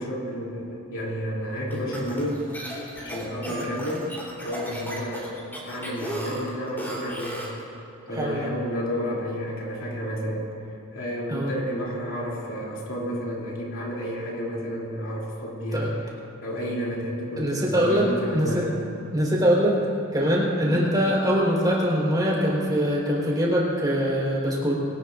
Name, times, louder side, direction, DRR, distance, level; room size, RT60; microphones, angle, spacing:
voice 1, 0.0-2.4 3.0-4.1 4.4-5.3 5.6-7.4 8.1-10.5 10.9-15.9 16.4-18.8 20.6-20.9, equal, 60° left, -3 dB, 3.0 m, -31 dB
sound 1, 1.7-7.6, right 1 dB, 10° left, 3.6 m, -35 dB
voice 2, 8.1-8.5 11.3-11.5 15.7-15.9 17.4-18.6 19.1-19.8 20.1-24.8, equal, 20° right, -5 dB, 4.2 m, -23 dB
23.0 x 19.0 x 2.6 m, 2.9 s
head